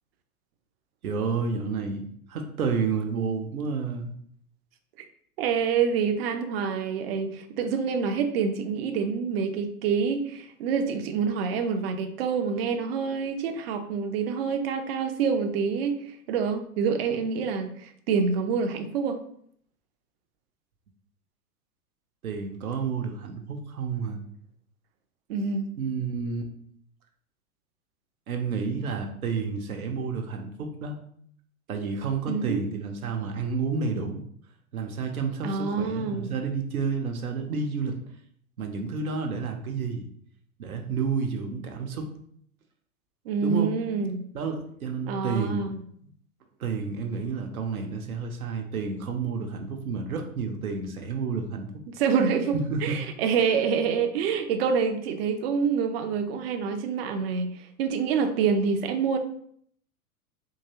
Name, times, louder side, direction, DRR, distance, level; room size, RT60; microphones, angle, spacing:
voice 1, 1.0-4.1 22.2-24.2 25.8-26.5 28.3-31.0 31.7-34.2 34.7-38.0 38.6-40.0 40.6-42.1 43.4-43.8 44.3-45.7 46.0-46.1 46.6-51.7 52.5-53.0, right 5 dB, 75° right, 3 dB, 0.7 m, -30 dB
voice 2, 5.4-19.2 25.3-25.7 32.3-32.7 35.4-36.3 43.3-44.2 45.1-45.8 52.0-59.2, right 6 dB, 45° right, 6 dB, 0.5 m, -27 dB
3.8 x 2.9 x 2.8 m, 0.64 s
figure-of-eight pair, 95°, 43 cm